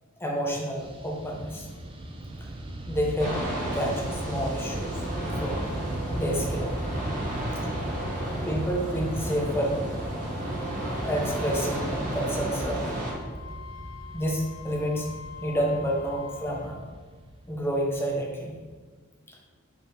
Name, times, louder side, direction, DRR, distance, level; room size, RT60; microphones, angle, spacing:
voice 1, 0.2-1.7 2.9-3.5 3.7-5.6 6.1-7.1 7.6-7.7 8.1-9.8 10.8-12.9 14.1-15.1 15.4-16.8 17.5-18.6, equal, 10° left, -1 dB, 0.9 m, -29 dB
Fixed-wing aircraft airplane, 0.7-18.2, right 1 dB, 25° right, 0.6 m, -37 dB
sound 1, 3.2-13.1, right 1 dB, 40° right, 1.7 m, -33 dB
voice 2, 7.4-8.5 10.3-11.1 13.4-14.0, right 1 dB, 70° right, 5 dB, 0.6 m, -57 dB
Wind instrument woodwind instrument, 13.1-16.8, left 7 dB, 75° left, 0.7 m, -45 dB
5.2 x 4.3 x 4.3 m, 1.5 s
head